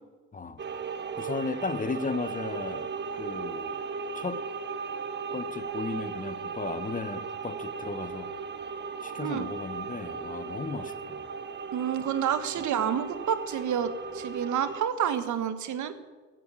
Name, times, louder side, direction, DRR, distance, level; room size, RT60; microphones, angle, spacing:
voice 1, 0.3-0.6 1.2-2.9 3.2-3.8 4.1-4.4 5.3-8.3 9.0-11.3, left 4 dB, 25° left, 13 dB, 1.1 m, -35 dB
sound 1, 0.6-14.8, right 5 dB, 35° right, 1.1 m, -37 dB
voice 2, 11.7-15.9, right 8 dB, 75° right, 11 dB, 1.5 m, -29 dB
14.5 x 9.1 x 8.8 m, 1.4 s
cardioid pair, 90°, 30 cm